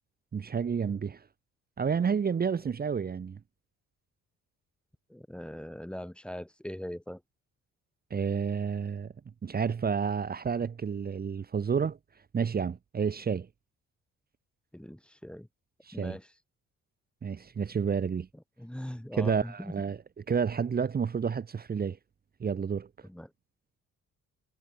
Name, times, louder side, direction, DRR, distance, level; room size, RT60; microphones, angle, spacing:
voice 1, 0.3-1.2 1.8-3.4 8.1-9.1 9.4-12.0 12.3-13.5 15.9-16.2 17.2-18.3 19.1-20.0 20.3-22.0 22.4-22.9, right 6 dB, 30° right, 0.8 m, -30 dB
voice 2, 5.1-7.2 14.7-15.5 15.9-16.3 18.3-19.7 23.0-23.3, equal, 5° left, 2.1 m, -41 dB
cardioid pair, 90°, 30 cm